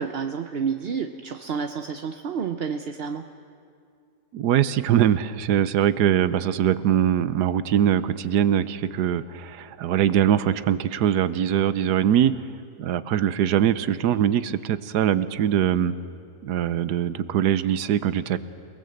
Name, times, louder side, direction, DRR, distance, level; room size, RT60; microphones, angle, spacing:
voice 1, 0.0-3.3, right 6 dB, 50° right, 7 dB, 0.8 m, -29 dB
voice 2, 4.3-12.3 12.8-15.9 16.4-18.4, right 10 dB, 85° right, 14 dB, 1.3 m, -22 dB
28.5 x 19.0 x 7.8 m, 2.4 s
omnidirectional pair, 1.7 m